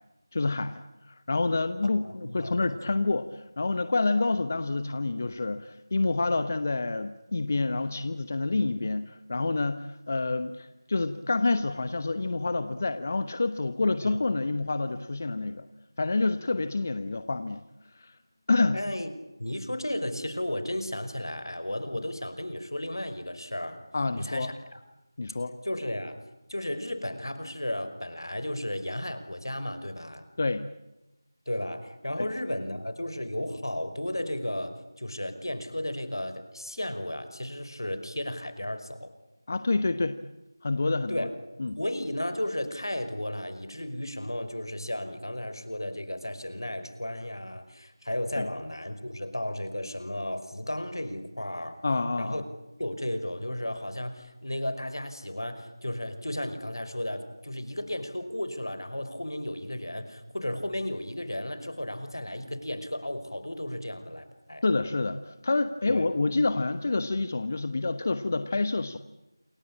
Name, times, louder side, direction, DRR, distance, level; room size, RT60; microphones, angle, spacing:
voice 1, 0.3-0.8 1.1-15.7 16.0-17.6 17.9-18.1 18.5-18.8 23.9-24.5 25.2-25.5 30.4-30.7 32.2-32.3 39.5-40.2 40.6-41.3 41.6-41.8 48.4-48.5 51.8-52.4 64.6-69.0, left 3 dB, 35° left, 11 dB, 1.1 m, -28 dB
voice 2, 2.0-2.8 13.9-14.2 18.7-19.1 19.4-23.8 24.2-24.8 25.6-26.2 26.5-30.3 31.5-39.1 41.1-41.3 41.8-51.8 52.2-52.5 52.8-64.6 65.9-66.1, left 1 dB, 85° left, 10 dB, 5.4 m, -34 dB
28.5 x 24.0 x 8.6 m, 0.96 s
figure-of-eight pair, 170°, 2 cm